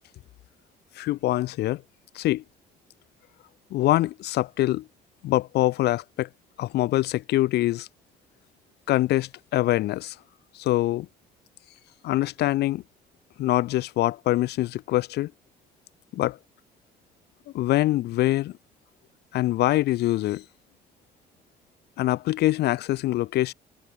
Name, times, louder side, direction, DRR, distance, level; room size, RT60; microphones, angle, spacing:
voice 1, 1.0-1.8 2.1-2.4 3.7-4.8 5.2-6.3 6.6-7.9 8.9-10.2 10.5-11.1 12.0-12.8 13.4-15.3 16.1-16.4 17.5-18.6 19.3-20.4 22.0-23.5, left 16 dB, 75° left, 3.9 m, -24 dB
cardioid pair, 110°, 17 cm